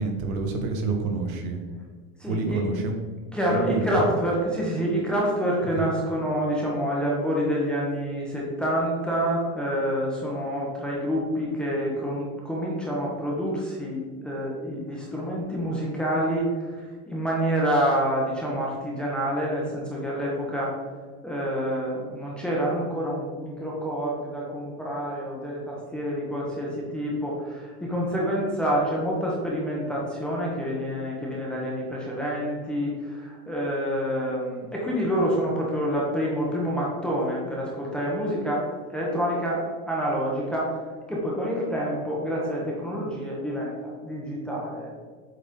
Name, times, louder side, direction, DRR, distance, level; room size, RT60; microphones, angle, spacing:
voice 1, 0.0-1.6 2.3-3.0 3.5-4.1 5.7-5.9, right 3 dB, 90° right, 4 dB, 1.4 m, -28 dB
voice 2, 2.2-2.7 3.3-20.8 21.2-40.8 41.1-44.9, equal, ahead, -5 dB, 0.7 m, -27 dB
8.1 x 4.0 x 3.7 m, 1.5 s
supercardioid pair, 170°, 40 cm